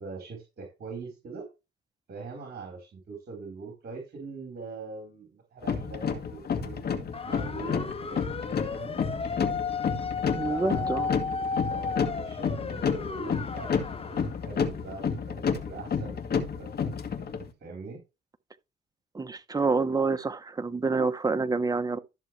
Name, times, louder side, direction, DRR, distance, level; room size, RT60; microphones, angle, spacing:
voice 1, 0.0-1.5 2.1-6.8 7.2-9.0 10.4-16.9 17.6-18.0, right 4 dB, 55° right, 4.2 m, -43 dB
sound 1, 5.6-17.5, left 6 dB, 50° left, 2.0 m, -30 dB
sound 2, 7.1-14.3, left 5 dB, 30° left, 0.9 m, -34 dB
voice 2, 10.3-11.1 19.1-22.0, right 3 dB, 20° right, 1.1 m, -27 dB
13.5 x 7.0 x 3.2 m
cardioid pair, 90°, 20 cm